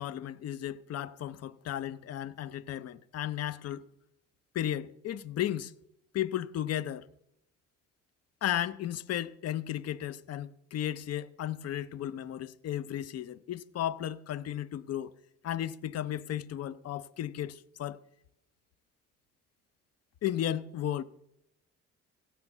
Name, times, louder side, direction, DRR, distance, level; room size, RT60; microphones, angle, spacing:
voice 1, 0.0-3.9 4.5-5.7 6.1-7.1 8.4-15.1 15.4-18.0 20.2-21.0, left 11 dB, 55° left, 0.6 m, -34 dB
16.0 x 5.8 x 7.2 m
cardioid pair, 90°, 30 cm